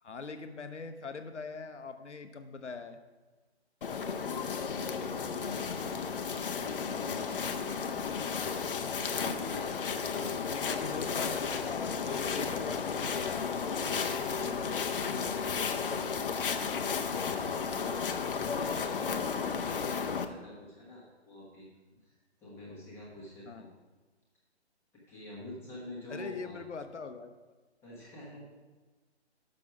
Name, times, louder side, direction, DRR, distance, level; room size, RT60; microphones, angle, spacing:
voice 1, 0.0-3.0 6.6-6.8 10.1-13.8 15.1-15.5 23.5-23.6 26.1-27.3, left 4 dB, 90° left, 8 dB, 0.8 m, -42 dB
sound 1, 3.8-20.2, left 6 dB, 50° left, 0.6 m, -33 dB
voice 2, 4.0-4.5 4.9-8.2 9.0-11.1 12.5-12.8 15.8-16.3 16.8-17.3 18.3-21.7 22.0-23.7 25.1-26.6 27.8-28.5, left 1 dB, 5° left, -6 dB, 1.0 m, -47 dB
6.5 x 6.0 x 5.9 m, 1.3 s
figure-of-eight pair, 145°, 34 cm